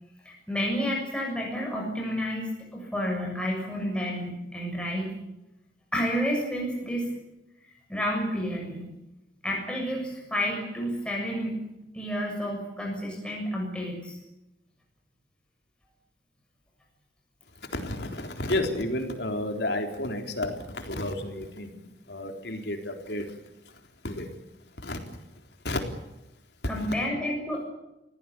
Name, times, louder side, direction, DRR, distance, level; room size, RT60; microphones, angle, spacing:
voice 1, 0.3-5.1 5.9-7.1 7.6-8.9 9.4-11.6 11.9-14.2 26.7-27.6, equal, 5° left, -1 dB, 6.9 m, -30 dB
voice 2, 17.7-23.3 24.0-24.3 24.8-25.0 25.6-25.8 26.7-26.9, left 1 dB, 75° left, 5 dB, 3.8 m, -31 dB
27.0 x 17.5 x 8.6 m, 0.93 s
head